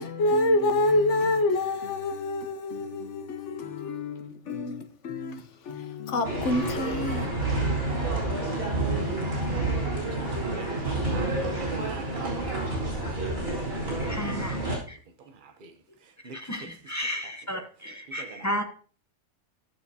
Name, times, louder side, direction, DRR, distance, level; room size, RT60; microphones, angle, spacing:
voice 1, 0.0-7.3, left 2 dB, 60° left, 1.2 m, -27 dB
sound 1, 6.2-14.8, right 2 dB, 70° right, 3.9 m, -29 dB
voice 2, 8.9-14.7 15.2-15.8 16.0-17.4 17.8-18.6, right 5 dB, 45° right, 0.9 m, -45 dB
voice 3, 14.0-14.6 14.9-15.0 16.3-18.6, equal, 15° left, 0.7 m, -33 dB
14.0 x 6.9 x 2.8 m
omnidirectional pair, 1.4 m